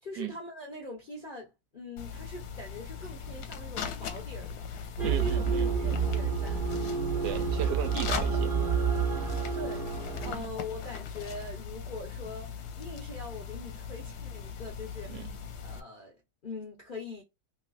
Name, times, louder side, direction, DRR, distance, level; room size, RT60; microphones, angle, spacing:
voice 1, 0.0-6.7 9.5-15.3 15.6-16.2 16.4-17.2, left 2 dB, 55° left, 0.5 m, -43 dB
sound 1, 2.0-15.8, left 6 dB, 75° left, 1.1 m, -39 dB
sound 2, 5.0-10.3, right 6 dB, 60° right, 0.5 m, -29 dB
voice 2, 5.0-5.7 7.2-8.5 10.2-10.4 15.1-15.3, right 9 dB, 75° right, 1.1 m, -36 dB
3.1 x 2.9 x 2.5 m
omnidirectional pair, 1.9 m